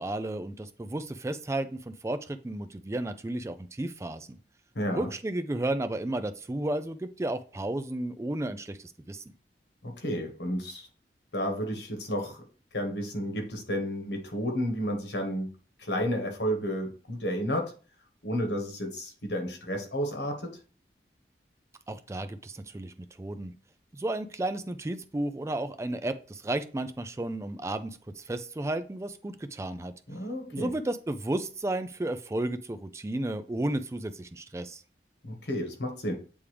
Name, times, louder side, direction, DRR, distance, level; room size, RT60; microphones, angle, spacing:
voice 1, 0.0-4.4 4.9-9.2 21.9-23.5 23.9-29.9 30.5-34.8, right 1 dB, 15° right, 10 dB, 0.3 m, -33 dB
voice 2, 4.7-5.1 9.8-10.9 11.3-12.4 12.7-15.5 15.8-17.7 18.2-20.5 30.1-30.7 35.2-36.1, equal, 75° left, 3 dB, 1.5 m, -31 dB
8.3 x 3.5 x 3.3 m, 0.38 s
head